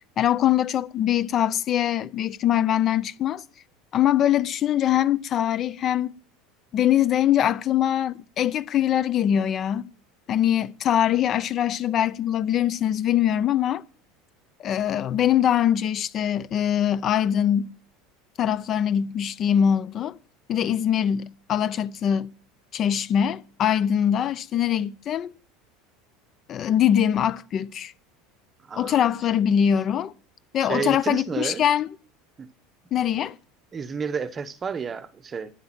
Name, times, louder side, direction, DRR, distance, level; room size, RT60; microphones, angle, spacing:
voice 1, 0.2-3.4 3.9-6.1 6.7-9.9 10.3-13.8 14.6-17.7 18.4-20.2 20.5-22.3 22.7-25.3 26.5-27.9 28.7-30.1 30.5-31.9 32.9-33.3, left 10 dB, 30° left, 0.6 m, -23 dB
voice 2, 28.7-29.0 30.7-31.6 32.4-32.5 33.7-35.5, right 6 dB, 20° right, 0.9 m, -31 dB
12.0 x 10.5 x 7.4 m
cardioid pair, 160°, 0 cm